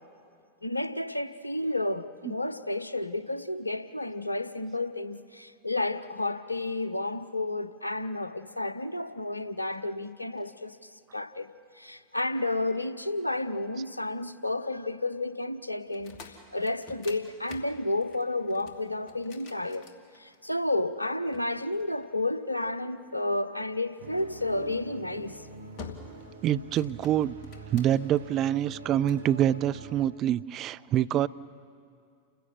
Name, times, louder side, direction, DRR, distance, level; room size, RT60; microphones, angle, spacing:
voice 1, 0.6-10.8 11.1-16.2 16.5-19.9 20.2-25.4, left 2 dB, 85° left, 13 dB, 0.8 m, -31 dB
sound 1, 15.9-20.6 21.3-22.6 24.4-24.7 25.2-25.4 25.8-26.3 26.6-28.2 28.7-29.3, left 4 dB, 40° left, 2.3 m, -48 dB
sound 2, 24.0-30.1, right 3 dB, 70° right, 1.7 m, -45 dB
voice 2, 26.4-27.3 27.7-31.3, right 11 dB, 35° right, 15 dB, 0.5 m, -26 dB
29.5 x 16.0 x 7.4 m, 2.3 s
figure-of-eight pair, 90°, 0 cm